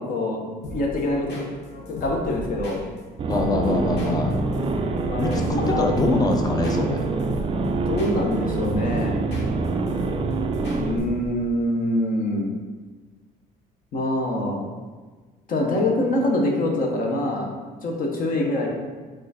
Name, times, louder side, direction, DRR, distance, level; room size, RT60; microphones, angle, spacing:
voice 1, 0.0-1.5 1.9-2.8 5.1-5.9 7.9-9.2 10.7-12.5 13.9-14.7 15.5-17.5 17.8-18.7, left 1 dB, 55° left, 0 dB, 0.9 m, -25 dB
sound 1, 0.6-11.5, equal, 80° left, 1.0 m, -37 dB
sound 2, 3.2-11.0, right 3 dB, 30° right, 0.4 m, -26 dB
voice 2, 3.3-4.4 5.2-5.4 5.7-7.0, left 2 dB, 20° left, 3 dB, 0.5 m, -23 dB
4.7 x 2.5 x 4.1 m, 1.4 s
cardioid pair, 110°, 17 cm